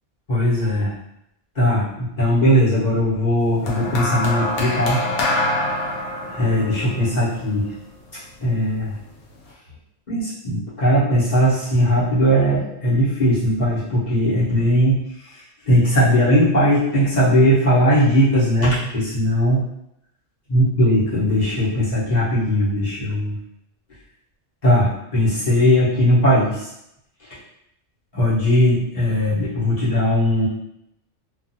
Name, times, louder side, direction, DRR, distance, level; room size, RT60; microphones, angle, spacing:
voice 1, 0.3-0.9 1.5-5.0 6.2-7.7 8.4-9.0 10.1-15.0 15.2-19.6 20.5-23.3 24.6-26.7 28.1-30.5, equal, 40° left, -10 dB, 1.0 m, -19 dB
sound 1, 3.7-8.1 9.0-9.3, left 1 dB, 65° left, 0.7 m, -25 dB
2.5 x 2.3 x 2.6 m, 0.81 s
omnidirectional pair, 1.3 m